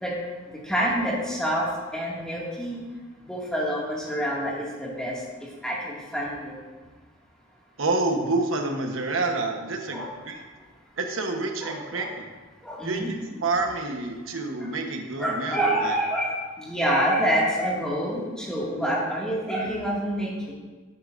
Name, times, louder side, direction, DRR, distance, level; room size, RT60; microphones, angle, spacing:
voice 1, 0.6-2.8 3.3-5.1 5.6-6.6 9.9-10.1 11.6-12.1 12.6-13.1 15.2-20.5, equal, 5° left, -5 dB, 2.1 m, -27 dB
voice 2, 7.8-10.4 11.0-12.3 12.8-15.6 15.8-15.9, right 3 dB, 90° right, 3 dB, 1.1 m, -28 dB
12.5 x 9.9 x 2.6 m, 1.3 s
head